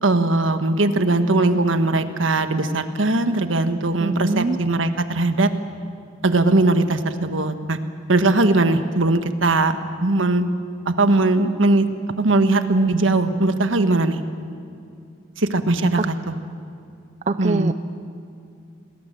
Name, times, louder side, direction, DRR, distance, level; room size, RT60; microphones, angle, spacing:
voice 1, 0.0-5.5 6.2-7.8 8.1-10.5 10.8-11.9 12.2-14.2 15.4-16.4 17.4-17.7, right 2 dB, 85° right, 9 dB, 1.5 m, -19 dB
voice 2, 4.0-4.6 16.0-16.1 17.3-17.7, right 3 dB, 40° right, 12 dB, 0.5 m, -23 dB
27.5 x 20.0 x 7.6 m, 2.4 s
head